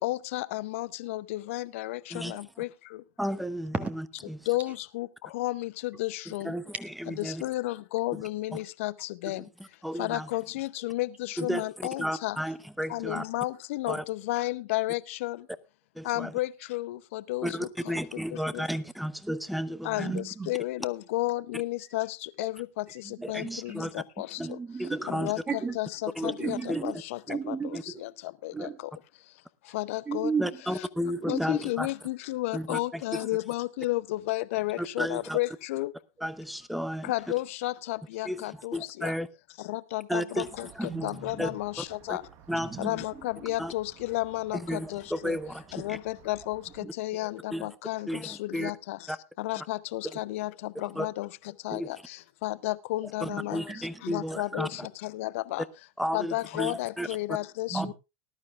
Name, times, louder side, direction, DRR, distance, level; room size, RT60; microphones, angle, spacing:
voice 1, 0.0-2.0 2.2-2.7 4.5-5.1 5.3-6.5 7.4-9.4 10.0-12.4 12.9-15.4 16.1-17.5 18.5-18.6 19.8-22.8 23.3-24.4 25.1-25.4 25.8-28.1 28.4-28.7 29.7-30.3 31.3-35.9 37.0-39.1 39.7-40.7 41.0-42.2 42.8-45.4 45.7-46.6 47.0-49.0 49.4-51.3 51.6-52.0 52.4-53.6 54.0-55.6 56.1-57.9, left 18 dB, 65° left, 0.7 m, -32 dB
voice 2, 3.2-3.7 4.3-4.5 6.4-7.4 9.8-10.3 11.4-13.2 13.9-14.0 15.9-16.3 17.4-20.2 23.2-23.9 24.4-24.5 24.8-25.3 26.2-26.3 26.7-26.8 27.7-27.8 30.4-31.9 32.5-33.3 34.8-35.4 36.2-37.1 38.2-38.4 38.7-39.3 40.1-41.1 41.4-41.5 41.8-42.2 42.5-43.0 43.6-43.7 44.5-46.0 47.5-47.7 48.1-48.7 49.1-49.2 49.6-49.7 50.0-50.2 50.9-51.1 51.7-51.9 53.2-54.7 56.0-57.1 57.7-57.9, equal, ahead, 0.9 m, -33 dB
voice 3, 20.0-20.5 22.9-23.8 24.4-25.8 26.2-26.9 27.3-28.0 28.5-28.8 30.0-30.8 31.2-31.7 40.9-41.6 42.5-43.5 46.8-46.9 53.3-53.9 57.7-57.9, right 5 dB, 20° right, 1.4 m, -35 dB
sound 1, 40.4-46.9, right 9 dB, 45° right, 1.3 m, -55 dB
19.5 x 12.0 x 2.4 m
hypercardioid pair, 95°, 8 cm